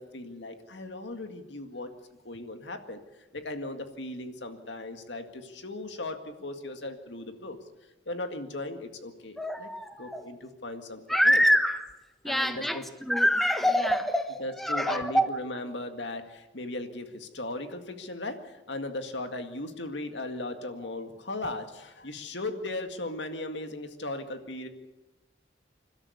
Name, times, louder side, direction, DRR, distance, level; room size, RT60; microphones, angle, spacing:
voice 1, 0.0-1.9 2.2-3.0 3.3-7.6 8.1-9.7 10.0-11.4 12.3-12.8 14.4-24.7, left 2 dB, 80° left, 6 dB, 2.0 m, -37 dB
voice 2, 9.4-10.3 11.1-11.9 12.2-15.3, equal, ahead, 7 dB, 1.1 m, -25 dB
28.0 x 12.5 x 8.4 m, 1.1 s
head